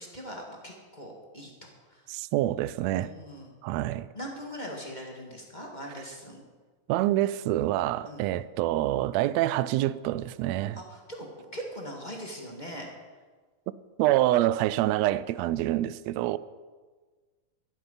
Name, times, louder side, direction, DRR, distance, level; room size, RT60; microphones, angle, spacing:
voice 1, 0.0-2.1 2.9-3.5 4.1-6.4 8.1-8.2 10.7-12.9, equal, 25° left, 0.9 m, -41 dB
voice 2, 2.1-3.1 3.6-4.1 6.9-10.8 14.0-16.4, right 14 dB, 85° right, 1.5 m, -26 dB
12.5 x 11.5 x 5.6 m
omnidirectional pair, 3.5 m